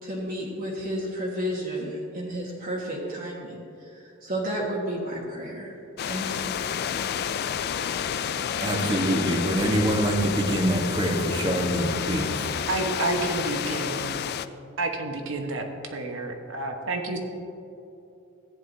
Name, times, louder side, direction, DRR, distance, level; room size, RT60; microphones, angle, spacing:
voice 1, 0.0-5.7 6.1-6.5, equal, 45° right, -5 dB, 1.5 m, -32 dB
sound 1, 6.0-14.5, left 8 dB, 50° left, 0.3 m, -30 dB
voice 2, 8.6-12.5, right 1 dB, 25° right, 1 dB, 1.2 m, -25 dB
voice 3, 12.7-14.1 14.8-17.2, right 2 dB, 65° right, 3 dB, 1.1 m, -29 dB
14.5 x 10.0 x 2.7 m, 2.8 s
head